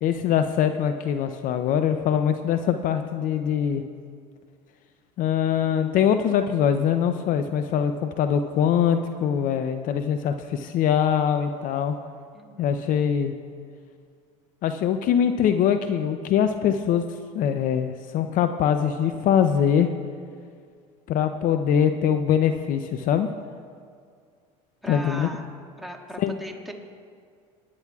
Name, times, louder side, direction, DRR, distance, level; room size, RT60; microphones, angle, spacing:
voice 1, 0.0-3.8 5.2-12.0 12.6-13.3 14.6-17.1 17.3-19.9 21.1-23.3 24.9-25.3 26.2-26.3, left 8 dB, 55° left, 8 dB, 0.6 m, -23 dB
voice 2, 12.3-12.8 24.8-25.4 25.8-26.7, equal, ahead, -1 dB, 2.0 m, -38 dB
27.5 x 10.5 x 2.4 m, 2.1 s
supercardioid pair, 85°, 17 cm